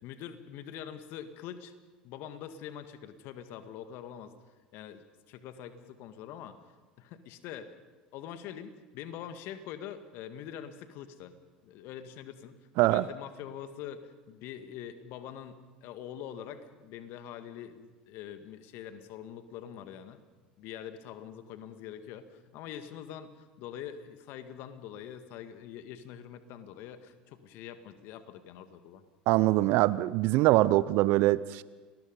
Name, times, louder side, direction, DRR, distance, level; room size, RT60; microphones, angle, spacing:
voice 1, 0.0-1.7 2.0-4.3 4.7-6.6 7.0-7.7 8.1-11.3 11.6-20.2 20.6-29.0, left 9 dB, 55° left, 9 dB, 2.0 m, -44 dB
voice 2, 29.3-31.6, right 17 dB, 55° right, 19 dB, 0.7 m, -23 dB
29.5 x 20.5 x 5.4 m, 1.3 s
hypercardioid pair, 75°, 4 cm